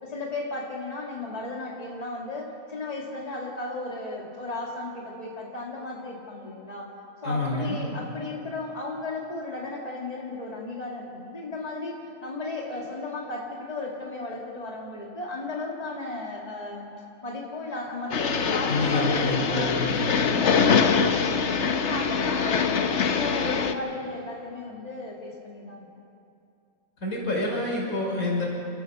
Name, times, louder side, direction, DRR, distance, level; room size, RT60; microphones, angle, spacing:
voice 1, 0.0-6.9 7.2-11.9 12.2-16.9 17.2-21.5 21.9-25.9, left 2 dB, 25° left, -2 dB, 2.2 m, -35 dB
voice 2, 7.2-7.8 18.7-20.2 27.0-28.5, left 2 dB, 75° left, -3 dB, 5.7 m, -28 dB
sound 1, 18.1-23.7, left 6 dB, 55° left, 1.2 m, -24 dB
29.5 x 13.5 x 6.7 m, 2.5 s
omnidirectional pair, 1.5 m